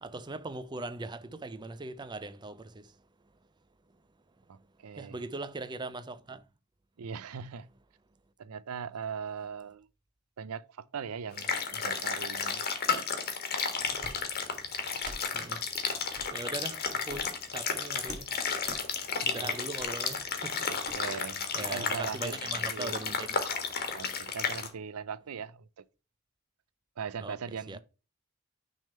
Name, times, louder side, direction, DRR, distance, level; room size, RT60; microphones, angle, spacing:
voice 1, 0.0-2.9 5.0-6.4 15.3-15.6 16.3-18.3 19.3-20.7 21.0-21.1 21.5-23.3 27.2-27.4 27.7-27.8, right 2 dB, 20° right, 0.4 m, -40 dB
voice 2, 4.5-5.2 7.0-7.7 8.4-9.9 10.4-12.6 12.9-13.1 19.2-19.6 20.7-22.4 22.7-23.0 23.9-25.8 27.0-27.8, right 6 dB, 80° right, 0.5 m, -40 dB
sound 1, 11.4-24.7, left 5 dB, 45° left, 1.3 m, -33 dB
sound 2, 14.0-14.2 15.0-15.2 16.1-16.3 17.0-17.4 18.1-18.3 18.6-18.8 19.8-19.9 20.8-21.0, right 1 dB, 40° right, 1.6 m, -44 dB
6.2 x 3.5 x 5.4 m
head